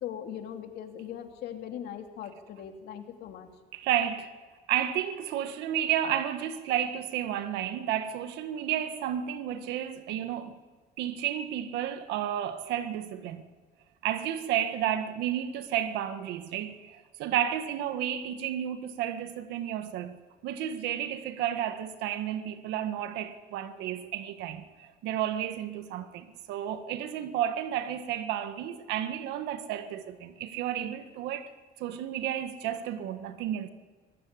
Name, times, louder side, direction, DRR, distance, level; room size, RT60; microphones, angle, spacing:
voice 1, 0.0-3.5, left 9 dB, 75° left, 2.9 m, -40 dB
voice 2, 3.7-4.3 4.7-10.6 11.0-13.4 14.0-31.5 31.8-33.7, right 10 dB, 90° right, 1.6 m, -32 dB
24.5 x 15.5 x 9.8 m
cardioid pair, 110°, 17 cm